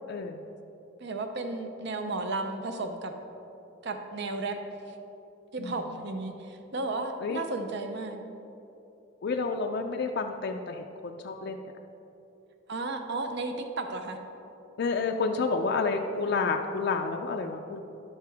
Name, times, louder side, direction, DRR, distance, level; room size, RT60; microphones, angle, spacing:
voice 1, 0.1-0.4 5.6-5.8 7.2-7.4 9.2-11.6 14.8-17.8, left 4 dB, 55° left, 4 dB, 0.4 m, -30 dB
voice 2, 1.0-3.1 3.8-4.6 5.5-8.2 12.7-14.2, right 3 dB, 60° right, 6 dB, 0.6 m, -33 dB
11.0 x 6.5 x 3.4 m, 2.9 s
head